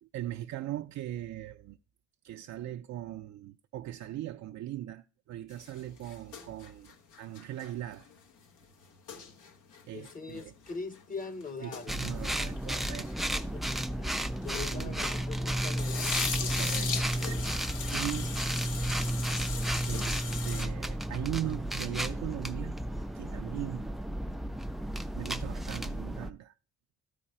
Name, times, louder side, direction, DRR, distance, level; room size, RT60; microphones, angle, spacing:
voice 1, 0.0-1.8 2.2-8.1 9.9-10.5 11.6-13.4 14.7-15.0 16.6-17.5 17.9-18.4 19.9-22.7 23.1-23.9 25.2-26.5, right 13 dB, 65° right, 0.5 m, -39 dB
Shave with foam and blades, 5.5-15.3 15.6-20.7, left 6 dB, 80° left, 1.1 m, -40 dB
voice 2, 9.9-11.9 13.2-16.2, left 4 dB, 30° left, 0.8 m, -42 dB
sound 1, 11.9-26.3, right 1 dB, ahead, 0.3 m, -33 dB
12.5 x 5.0 x 4.3 m
cardioid pair, 90°, 30 cm